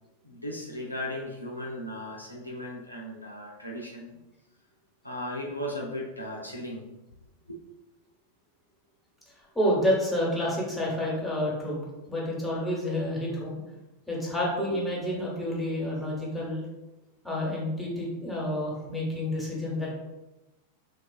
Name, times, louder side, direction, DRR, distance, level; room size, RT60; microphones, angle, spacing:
voice 1, 0.2-4.2 5.0-6.9 7.5-7.6, left 1 dB, 85° left, -2 dB, 0.4 m, -36 dB
voice 2, 9.5-11.8 12.1-13.6 14.1-16.6 17.2-19.9, left 1 dB, 5° left, -4 dB, 0.9 m, -29 dB
3.3 x 2.3 x 2.3 m, 1.0 s
figure-of-eight pair, 90°, 0 cm